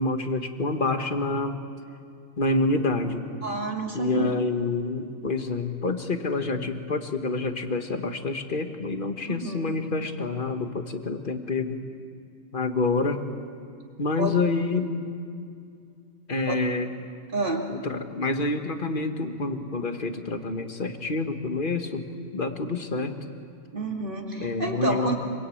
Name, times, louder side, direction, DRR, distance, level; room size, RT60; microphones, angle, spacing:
voice 1, 0.0-1.6 2.4-3.2 3.9-11.8 12.5-13.3 14.0-14.9 16.3-16.9 17.7-22.1 22.3-23.2 24.4-25.2, left 3 dB, 45° left, 6 dB, 1.7 m, -27 dB
voice 2, 3.4-4.3 9.3-9.8 14.2-14.3 16.5-16.6 17.3-17.6 23.7-25.2, right 3 dB, 45° right, 1 dB, 2.6 m, -29 dB
26.0 x 24.5 x 8.7 m, 2.3 s
omnidirectional pair, 1.3 m